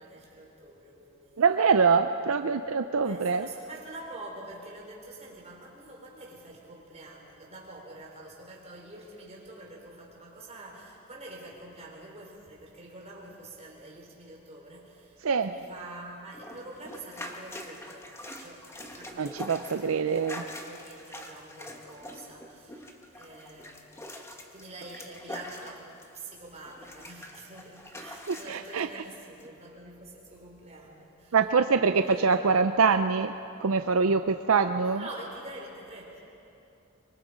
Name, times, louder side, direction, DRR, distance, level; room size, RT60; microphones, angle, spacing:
voice 1, 0.0-1.6 3.0-23.9 24.5-31.4 32.0-32.4 34.8-36.2, right 2 dB, 30° right, -2 dB, 4.5 m, -46 dB
voice 2, 1.4-3.5 15.2-15.5 19.2-20.4 28.3-29.0 31.3-33.3 33.6-35.0, right 5 dB, 70° right, 8 dB, 0.6 m, -24 dB
sound 1, 16.3-26.3 26.6-28.8 29.4-29.5, left 1 dB, 15° left, 1.5 m, -44 dB
24.5 x 24.0 x 5.1 m, 2.8 s
head